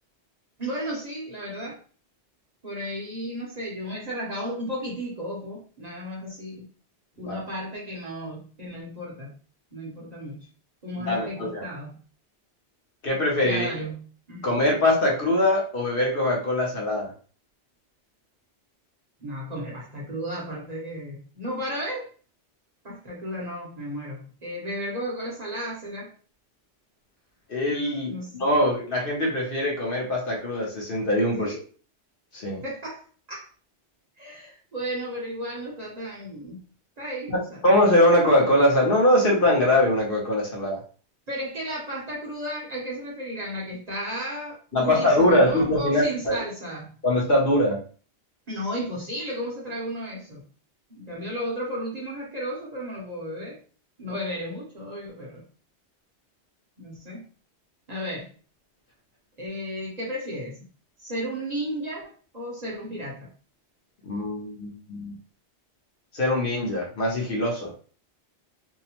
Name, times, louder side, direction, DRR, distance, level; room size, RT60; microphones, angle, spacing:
voice 1, 0.6-1.8 2.6-6.7 7.2-9.3 9.7-10.5 10.8-12.0 13.4-14.6 19.2-22.1 22.8-26.1 28.1-28.5 31.3-31.6 32.6-33.5 34.2-36.6 37.0-37.7 41.3-46.9 48.5-50.4 50.9-53.6 54.0-55.4 56.8-57.2 57.9-58.3 59.4-60.6 61.0-63.3, equal, 40° right, -4 dB, 0.7 m, -34 dB
voice 2, 11.1-11.6 13.0-13.7 14.4-17.1 27.5-31.5 32.3-32.6 37.3-40.8 44.7-46.4 47.0-47.8 64.0-65.2 66.1-67.7, left 1 dB, 55° left, -2 dB, 0.9 m, -22 dB
2.7 x 2.0 x 2.8 m, 0.39 s
omnidirectional pair, 1.2 m